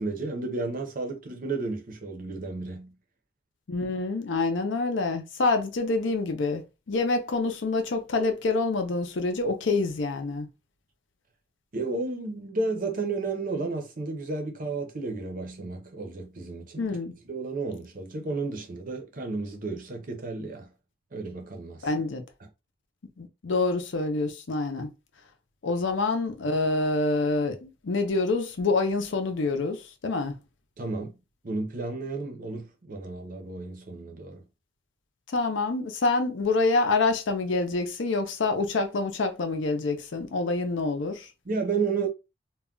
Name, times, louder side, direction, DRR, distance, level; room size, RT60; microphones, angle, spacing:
voice 1, 0.0-2.9 11.7-16.9 17.3-20.7 21.1-22.0 22.4-22.5 30.8-31.1 31.4-34.4 41.5-42.1, right 3 dB, 45° right, 0.6 m, -32 dB
voice 2, 3.7-10.5 16.8-17.1 21.8-22.2 23.2-24.9 25.6-30.4 35.3-41.3, left 3 dB, 65° left, 0.5 m, -27 dB
2.3 x 2.1 x 3.7 m
head